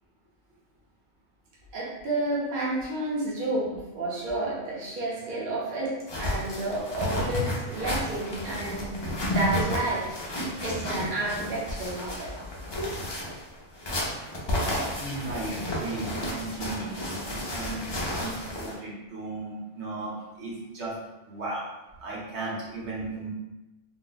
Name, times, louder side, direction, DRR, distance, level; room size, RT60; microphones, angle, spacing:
voice 1, 1.7-5.9 6.2-8.9 9.3-10.0 10.6-12.3, right 2 dB, 50° right, -6 dB, 0.8 m, -30 dB
sound 1, 6.1-18.8, left 1 dB, 35° left, 0.4 m, -32 dB
voice 2, 15.0-20.9 21.3-21.7 22.0-23.3, right 2 dB, 70° right, -6 dB, 1.2 m, -36 dB
2.7 x 2.1 x 3.8 m, 1.0 s
omnidirectional pair, 1.2 m